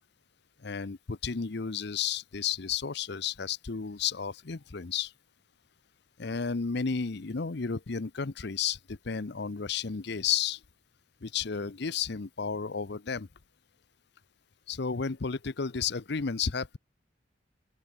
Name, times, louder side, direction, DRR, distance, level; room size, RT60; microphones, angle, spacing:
voice 1, 0.6-5.1 6.2-10.6 11.2-13.3 14.7-16.8, left 6 dB, 60° left, 0.8 m, -32 dB
open air
head